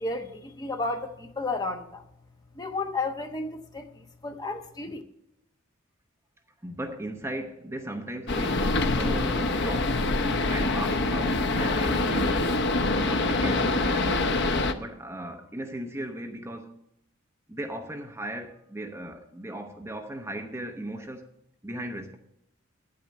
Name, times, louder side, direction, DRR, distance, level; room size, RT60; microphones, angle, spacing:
voice 1, 0.0-2.0 2.5-5.0, left 3 dB, 20° left, 1.0 m, -32 dB
voice 2, 6.6-10.0 10.5-12.6 13.0-14.4 14.7-16.7 17.5-21.2 21.6-22.2, right 1 dB, 15° right, 0.9 m, -37 dB
sound 1, 8.3-14.7, left 2 dB, 60° left, 0.8 m, -25 dB
9.5 x 8.6 x 7.6 m
head